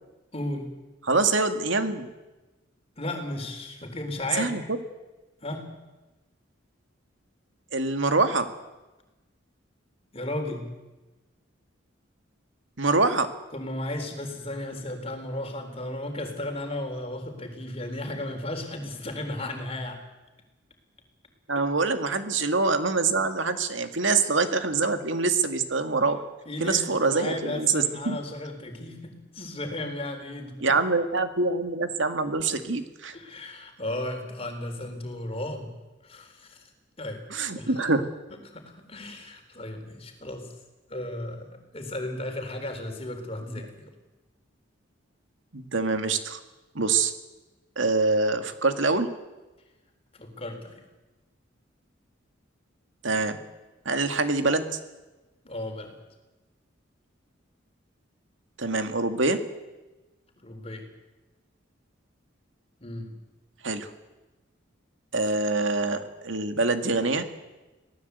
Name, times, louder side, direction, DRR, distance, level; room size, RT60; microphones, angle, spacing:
voice 1, 0.3-0.7 3.0-4.5 5.4-5.7 10.1-10.7 13.5-20.0 21.6-21.7 26.5-30.8 33.1-35.7 36.0-36.7 37.0-37.2 37.6-37.7 38.5-40.5 40.9-43.9 50.1-50.9 55.4-55.9 60.4-60.9 62.8-63.1, left 1 dB, 30° left, 5 dB, 3.8 m, -35 dB
voice 2, 1.0-2.1 4.3-4.8 7.7-8.5 12.8-13.3 21.5-26.2 26.6-28.2 30.6-33.2 37.3-38.1 43.6-43.7 45.5-46.4 46.7-47.1 47.8-49.1 53.0-53.4 53.9-54.8 58.6-59.4 63.6-63.9 65.1-67.3, right 3 dB, 70° right, 8 dB, 2.2 m, -25 dB
26.0 x 18.0 x 8.2 m, 1.1 s
head